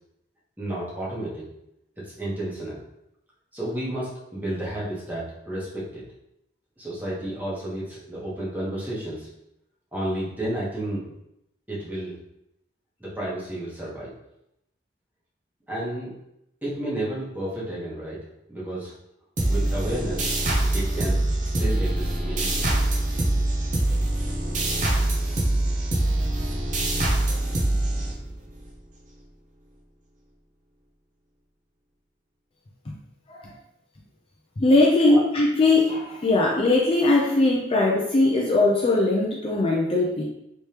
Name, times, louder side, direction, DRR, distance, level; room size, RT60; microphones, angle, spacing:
voice 1, 0.6-1.5 2.0-2.8 3.5-6.0 6.8-9.3 9.9-11.0 11.7-12.2 13.0-14.1 15.7-16.1 16.6-18.2 18.5-18.9 19.5-20.3 20.7-22.7 35.1-35.2, right 1 dB, 10° right, -7 dB, 1.1 m, -31 dB
sound 1, 19.4-28.6, right 1 dB, 40° right, 0.6 m, -24 dB
voice 2, 34.6-40.2, left 2 dB, 30° left, -3 dB, 0.4 m, -20 dB
3.3 x 3.1 x 2.9 m, 0.82 s
head